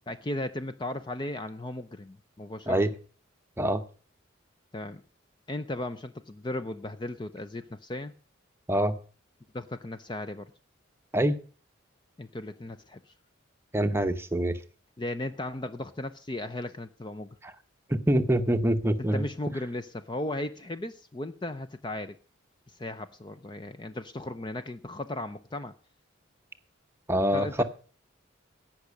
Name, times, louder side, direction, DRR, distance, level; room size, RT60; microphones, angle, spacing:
voice 1, 0.1-2.8 4.7-5.0 5.5-8.1 9.5-10.5 12.2-13.1 15.0-17.4 19.0-22.2 22.7-25.7 27.3-27.6, left 1 dB, 20° left, 10 dB, 0.5 m, -36 dB
voice 2, 13.7-14.6 17.9-19.3 27.1-27.6, right 1 dB, 10° right, 9 dB, 0.8 m, -25 dB
16.5 x 6.0 x 6.4 m, 0.40 s
head